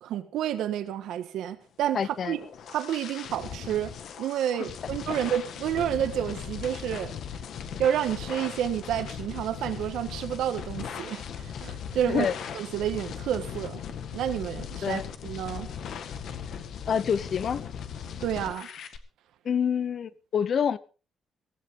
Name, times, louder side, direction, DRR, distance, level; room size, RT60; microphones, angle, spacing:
voice 1, 0.0-2.4 2.7-7.1 7.8-12.3 12.5-13.8 14.1-15.7 18.2-18.7, right 10 dB, 80° right, 9 dB, 1.5 m, -30 dB
voice 2, 1.9-2.4 12.1-12.3 14.8-15.0 16.9-17.6 19.4-20.8, left 7 dB, 40° left, 18 dB, 0.8 m, -27 dB
sound 1, 2.0-19.0, left 7 dB, 55° left, 1.7 m, -38 dB
17.0 x 15.5 x 3.8 m, 0.34 s
cardioid pair, 180°, 0 cm